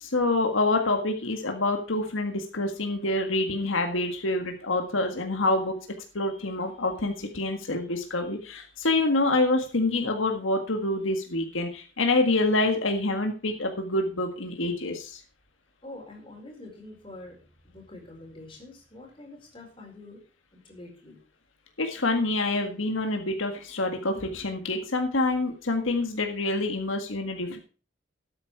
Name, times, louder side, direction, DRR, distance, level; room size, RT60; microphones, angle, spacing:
voice 1, 0.0-5.8 6.1-15.2 21.8-27.6, left 2 dB, 85° left, 4 dB, 1.8 m, -26 dB
voice 2, 7.4-7.8 15.8-17.4 17.7-20.2 20.5-21.2, left 2 dB, 25° left, -1 dB, 4.5 m, -46 dB
12.5 x 8.9 x 4.8 m, 0.37 s
head